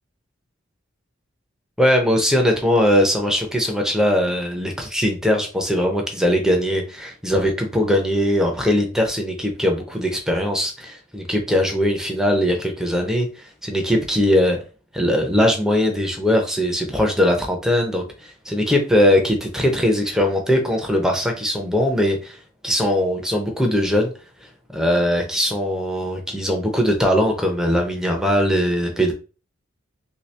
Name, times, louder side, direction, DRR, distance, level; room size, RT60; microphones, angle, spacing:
voice 1, 1.8-14.6 14.9-22.4 22.6-24.1 24.7-29.1, equal, 5° right, 2 dB, 0.6 m, -20 dB
3.2 x 2.8 x 3.2 m, 0.35 s
head